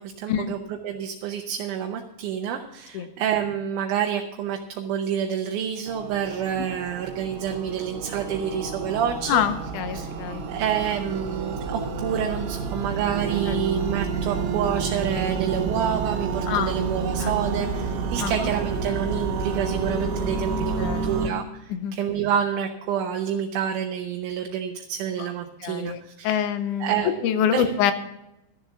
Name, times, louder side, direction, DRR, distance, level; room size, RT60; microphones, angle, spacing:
voice 1, 0.0-9.4 9.9-10.1 10.5-20.7 21.0-26.5 26.8-27.6, right 8 dB, 80° right, 3 dB, 2.3 m, -28 dB
sound 1, 5.9-21.3, right 5 dB, 60° right, 1.9 m, -29 dB
voice 2, 9.3-10.5 13.5-13.6 16.5-16.8 17.2-17.3 18.2-18.5 20.8-21.2 21.7-22.0 25.6-26.0 26.2-26.9 27.2-27.9, left 9 dB, 80° left, 11 dB, 2.3 m, -25 dB
13.0 x 7.4 x 7.1 m, 0.87 s
omnidirectional pair, 3.6 m